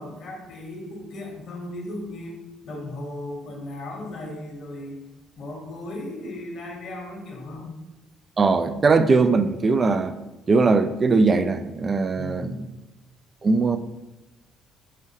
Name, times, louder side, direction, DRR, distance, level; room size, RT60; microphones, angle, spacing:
voice 1, 0.0-2.4 2.6-5.0 5.4-7.8 12.2-12.7, left 1 dB, 65° left, 0 dB, 1.1 m, -36 dB
voice 2, 8.4-10.2 10.5-12.7 13.4-13.8, right 4 dB, 40° right, 10 dB, 0.3 m, -20 dB
4.9 x 2.7 x 2.9 m, 1.0 s
hypercardioid pair, 60°, 0 cm